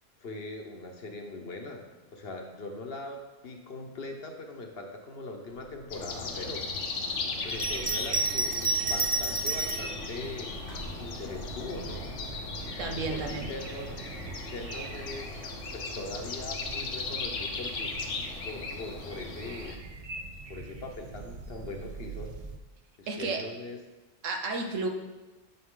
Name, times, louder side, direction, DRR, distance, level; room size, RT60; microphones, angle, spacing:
voice 1, 0.2-6.7 7.4-10.5 11.0-12.1 12.9-13.9 14.4-17.9 18.4-19.8 20.5-22.4 23.0-23.8, left 2 dB, 55° left, 3 dB, 1.1 m, -41 dB
sound 1, 5.9-19.8, left 4 dB, 75° left, 1.2 m, -37 dB
Bell, 7.5-10.0 10.7-11.6, right 2 dB, 35° right, 1.1 m, -30 dB
sound 2, 7.5-22.6, right 4 dB, 55° right, 0.4 m, -44 dB
voice 2, 12.8-13.5 23.1-23.4 24.2-24.9, right 3 dB, 80° right, 4 dB, 1.3 m, -32 dB
9.4 x 5.9 x 3.8 m, 1.2 s
omnidirectional pair, 1.3 m